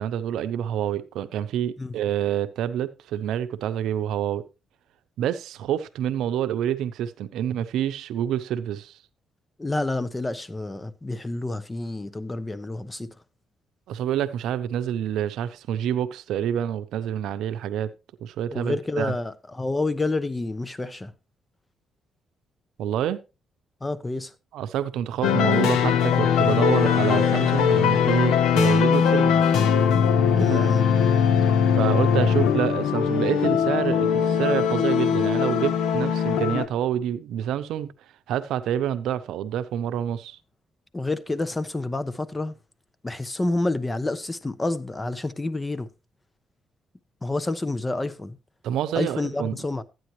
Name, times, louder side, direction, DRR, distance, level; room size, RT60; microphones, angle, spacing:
voice 1, 0.0-4.4 5.2-9.0 13.9-17.9 18.2-19.1 22.8-23.2 24.5-29.5 30.4-30.7 31.7-37.9 38.3-40.4 48.6-49.6, right 10 dB, 85° right, 0.7 m, -27 dB
voice 2, 9.6-13.1 18.5-21.1 23.8-24.3 30.4-30.9 40.9-42.5 43.0-45.9 47.2-48.4 48.9-49.8, left 2 dB, 20° left, 0.9 m, -28 dB
sound 1, 25.2-36.7, left 7 dB, 90° left, 0.9 m, -20 dB
13.0 x 9.3 x 3.1 m
cardioid pair, 90°, 0 cm